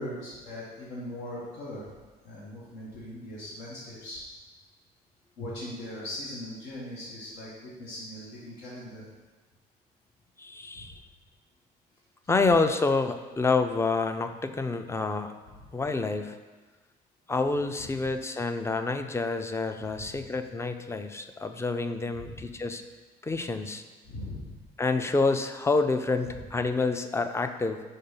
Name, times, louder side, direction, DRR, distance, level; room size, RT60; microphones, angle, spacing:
voice 1, 0.0-1.9 2.2-4.2 5.4-9.0 10.7-10.9 15.5-15.6 17.8-17.9 20.0-20.2 22.1-22.4 24.0-24.6 26.3-26.4, left 1 dB, 85° left, -7 dB, 1.5 m, -40 dB
voice 2, 10.4-11.0 12.3-15.4 15.7-16.4 17.3-22.8 23.2-23.8 24.8-27.8, left 3 dB, 15° left, 8 dB, 0.4 m, -28 dB
5.4 x 4.3 x 5.6 m, 1.3 s
cardioid pair, 110°, 17 cm